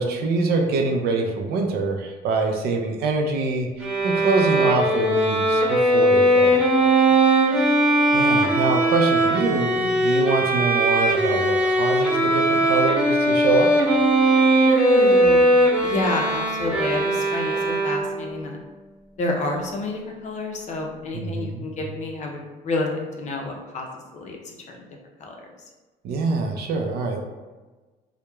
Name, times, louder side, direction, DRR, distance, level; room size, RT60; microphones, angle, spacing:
voice 1, 0.0-6.6 8.1-13.7 21.1-21.6 26.0-27.2, right 3 dB, 70° right, 3 dB, 0.5 m, -24 dB
Bowed string instrument, 3.8-18.3, right 1 dB, 5° right, 0.6 m, -19 dB
voice 2, 7.1-7.6 14.6-15.5 15.8-18.6 19.2-22.4 22.6-23.9 24.1-24.4 24.7-24.8 25.2-25.3, left 2 dB, 45° left, 1 dB, 0.5 m, -29 dB
2.9 x 2.1 x 2.2 m, 1.2 s
cardioid pair, 110°, 17 cm